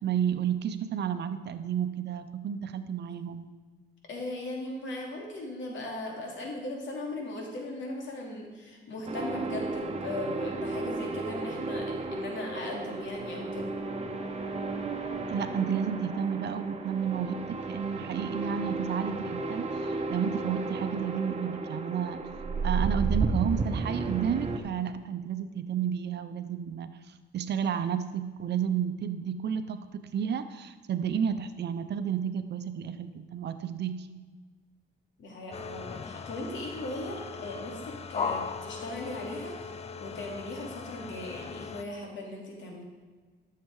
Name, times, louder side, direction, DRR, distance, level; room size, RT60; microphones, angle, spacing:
voice 1, 0.0-3.5 15.3-22.2 22.6-34.1, right 8 dB, 60° right, 10 dB, 0.8 m, -31 dB
voice 2, 4.1-13.7 35.2-39.7 40.0-42.8, left 1 dB, 70° left, 0 dB, 2.8 m, -38 dB
sound 1, 9.1-24.6, right 3 dB, 30° right, 1.2 m, -33 dB
sound 2, 35.5-41.8, left 5 dB, 30° left, 0.6 m, -38 dB
13.5 x 6.8 x 4.8 m, 1.4 s
cardioid pair, 90°, 20 cm